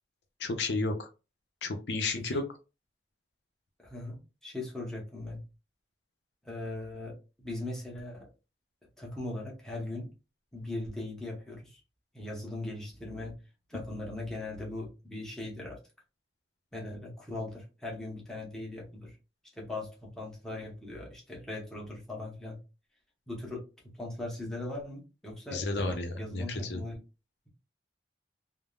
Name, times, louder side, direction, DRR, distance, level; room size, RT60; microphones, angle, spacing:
voice 1, 0.4-1.1 1.6-2.4 25.5-26.8, left 2 dB, 80° left, 5 dB, 0.6 m, -32 dB
voice 2, 3.8-5.4 6.4-8.3 9.0-10.1 10.5-11.8 12.1-13.4 13.7-15.8 16.7-19.2 19.6-22.6 23.3-23.6 24.0-27.0, left 2 dB, 5° left, -3 dB, 0.9 m, -39 dB
3.5 x 2.0 x 2.4 m, 0.30 s
head